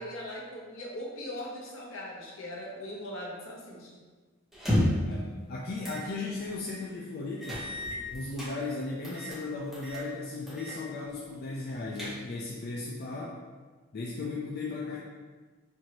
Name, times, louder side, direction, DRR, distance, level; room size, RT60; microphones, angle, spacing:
voice 1, 0.0-3.9, left 1 dB, 65° left, -3 dB, 0.8 m, -40 dB
sound 1, 4.5-5.1 5.8-6.1 6.5-6.6 7.4-8.5 9.0-9.4 9.7-10.0 10.5-10.8 11.1-11.2 11.7-12.5, left 1 dB, ahead, 0.9 m, -31 dB
voice 2, 4.7-7.7 8.1-13.4 13.9-15.0, left 3 dB, 45° left, -4 dB, 0.4 m, -36 dB
4.4 x 2.6 x 2.9 m, 1.4 s
head